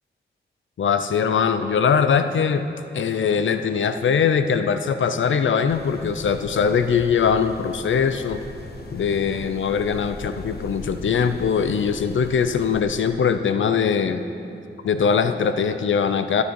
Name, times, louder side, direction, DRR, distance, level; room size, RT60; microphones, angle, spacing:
voice 1, 0.8-2.6 2.9-8.4 8.9-14.2 14.8-16.4, left 6 dB, 70° left, 10 dB, 0.6 m, -21 dB
sound 1, 5.7-12.8, left 2 dB, 50° left, 1.1 m, -39 dB
14.5 x 9.6 x 4.7 m, 2.6 s
cardioid pair, 80°, 20 cm